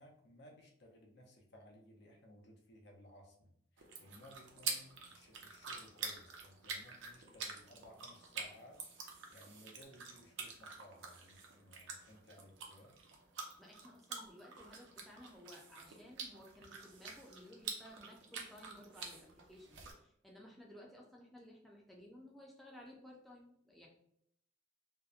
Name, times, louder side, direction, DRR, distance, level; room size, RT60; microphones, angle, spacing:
voice 1, 0.0-8.8 9.3-12.9, left 1 dB, 65° left, 1 dB, 0.5 m, -60 dB
sound 1, 3.8-19.9, right 5 dB, 75° right, 0.5 m, -47 dB
voice 2, 13.6-23.9, left 1 dB, ahead, -3 dB, 0.4 m, -57 dB
2.8 x 2.1 x 2.3 m, 0.71 s
head